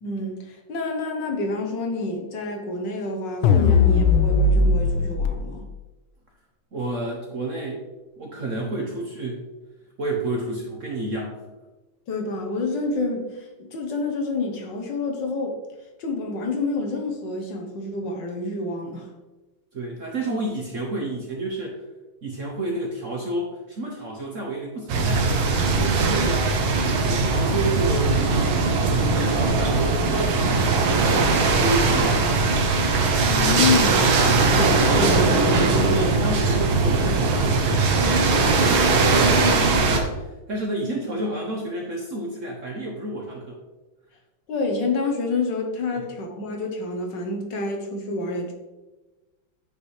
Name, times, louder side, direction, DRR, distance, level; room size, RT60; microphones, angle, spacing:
voice 1, 0.0-5.7 12.1-15.6 16.0-19.1 33.2-36.1 44.5-48.5, left 3 dB, 65° left, 2 dB, 1.6 m, -28 dB
sound 1, 3.4-5.3, left 4 dB, 90° left, 1.4 m, -18 dB
voice 2, 6.7-7.8 8.2-9.4 10.0-11.4 19.7-21.8 22.2-25.4 25.7-26.5 27.0-28.2 28.8-32.5 35.8-43.6 45.9-46.0, right 2 dB, 50° right, -1 dB, 1.0 m, -30 dB
sound 2, 24.9-40.0, right 3 dB, 80° right, 1.8 m, -20 dB
9.4 x 5.3 x 3.2 m, 1.1 s
omnidirectional pair, 2.2 m